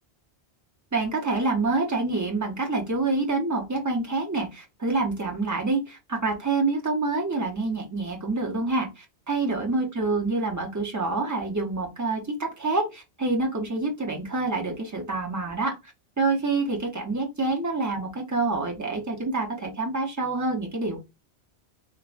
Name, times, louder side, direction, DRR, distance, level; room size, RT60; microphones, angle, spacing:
voice 1, 0.9-15.7 16.2-21.0, right 3 dB, 20° right, 1 dB, 0.5 m, -27 dB
3.3 x 2.1 x 2.4 m, 0.25 s
omnidirectional pair, 1.1 m